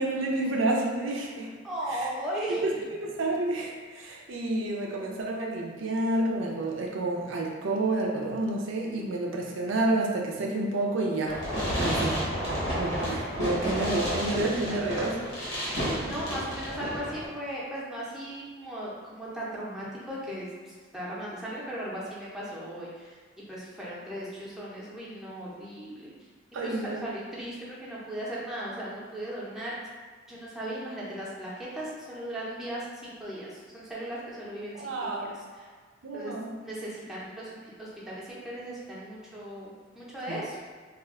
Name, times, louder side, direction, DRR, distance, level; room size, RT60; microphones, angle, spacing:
voice 1, 0.0-1.5 1.9-2.1 2.6-2.7 3.0-11.4 11.8-12.2 12.8-15.2 26.5-27.0 34.8-35.3 36.0-36.5 40.3-40.4, right 2 dB, 75° right, -1 dB, 0.4 m, -29 dB
voice 2, 1.6-2.8 11.8-12.3 15.7-23.2 23.5-26.1 26.6-29.8 30.3-35.7 36.1-36.3 36.6-40.6, right 1 dB, ahead, -8 dB, 0.6 m, -37 dB
Fireworks, 11.3-17.3, equal, 75° left, 0.9 m, -31 dB
2.4 x 2.2 x 3.5 m, 1.5 s
head